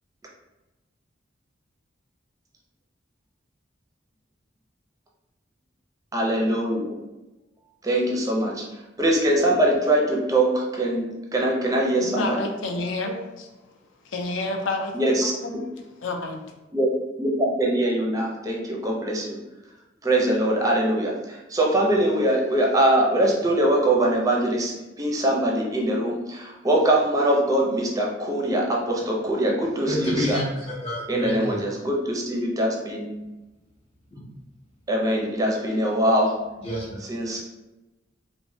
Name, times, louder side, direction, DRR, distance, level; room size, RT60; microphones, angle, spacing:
voice 1, 6.1-7.0 7.8-8.6 9.0-12.4 14.9-15.6 16.7-16.9 17.2-19.4 20.0-24.7 25.0-30.4 31.1-33.1 34.9-36.3 37.1-37.4, right 1 dB, 20° right, -1 dB, 0.5 m, -22 dB
voice 2, 12.0-13.5 14.0-15.7 16.0-16.4, left 2 dB, 75° left, 3 dB, 0.4 m, -30 dB
voice 3, 29.8-31.7 34.1-34.3 36.6-37.2, equal, 35° left, -5 dB, 0.6 m, -30 dB
3.0 x 2.1 x 2.6 m, 1.0 s
head